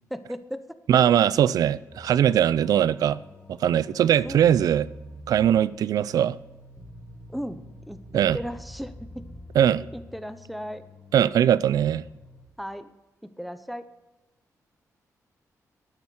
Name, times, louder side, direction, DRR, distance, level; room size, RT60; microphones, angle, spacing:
voice 1, 0.1-0.8 4.2-4.4 7.3-9.3 9.9-10.8 11.2-11.3 12.6-12.9 13.2-13.9, equal, ahead, 11 dB, 0.8 m, -36 dB
voice 2, 0.9-3.2 3.6-4.9 5.3-6.4 8.1-8.4 9.6-9.8 11.1-12.0, right 10 dB, 85° right, 18 dB, 0.4 m, -20 dB
sound 1, 1.9-12.5, left 3 dB, 25° left, 4.2 m, -50 dB
sound 2, 4.1-9.4, right 2 dB, 20° right, 1.1 m, -46 dB
12.0 x 9.4 x 6.4 m, 1.0 s
cardioid pair, 105°, 6 cm